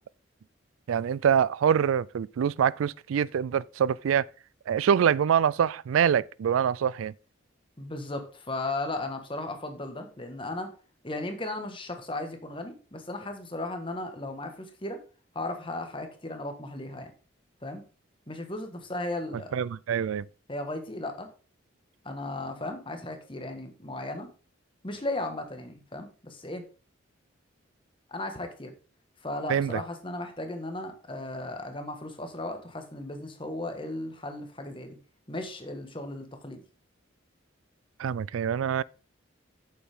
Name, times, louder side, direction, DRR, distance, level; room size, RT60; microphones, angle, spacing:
voice 1, 0.9-4.3 4.7-7.1 19.5-20.3 29.5-29.8 38.0-38.8, right 8 dB, 85° right, 0.3 m, -25 dB
voice 2, 7.8-10.7 11.0-15.0 15.3-17.1 17.6-17.8 18.3-19.5 20.5-21.3 22.0-24.3 24.8-26.6 28.1-28.7 29.2-35.0 35.3-36.6, left 2 dB, 25° left, 1.5 m, -36 dB
8.7 x 7.2 x 3.6 m
head